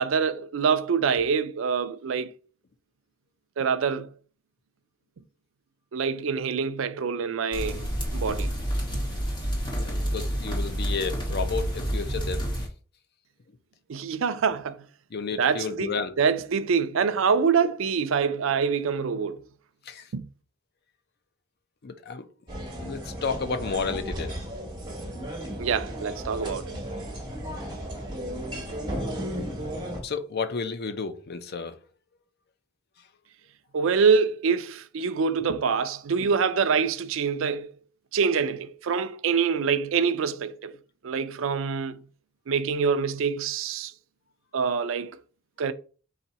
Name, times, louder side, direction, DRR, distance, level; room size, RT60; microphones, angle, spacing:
voice 1, 0.0-2.3 3.6-4.1 5.9-7.9 8.1-8.5 8.9-9.0 13.9-14.8 15.4-19.4 20.1-20.3 25.6-26.8 33.7-37.7 38.1-40.7 41.0-42.0 42.5-43.9 44.5-45.1 45.6-45.7, right 6 dB, 70° right, 0.4 m, -25 dB
sound 1, 7.5-12.7, equal, 25° left, 1.5 m, -29 dB
voice 2, 9.7-12.4 15.1-16.1 19.9-20.0 21.8-24.4 30.0-31.7, left 4 dB, 50° left, 0.5 m, -32 dB
sound 2, 22.5-30.0, equal, 20° right, 1.4 m, -34 dB
4.1 x 2.6 x 4.1 m
head